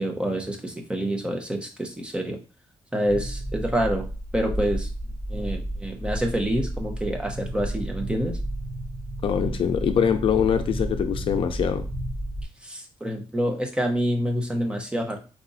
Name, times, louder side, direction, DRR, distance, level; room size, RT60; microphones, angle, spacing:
voice 1, 0.0-2.4 2.9-4.0 4.3-4.9 5.3-8.3 12.6-15.2, equal, 10° right, 2 dB, 1.0 m, -27 dB
sound 1, 3.1-12.4, right 1 dB, 30° left, 1.2 m, -32 dB
voice 2, 9.2-11.9, left 8 dB, 60° left, 7 dB, 0.5 m, -23 dB
4.7 x 2.6 x 4.1 m, 0.34 s
wide cardioid pair, 145°, 10 cm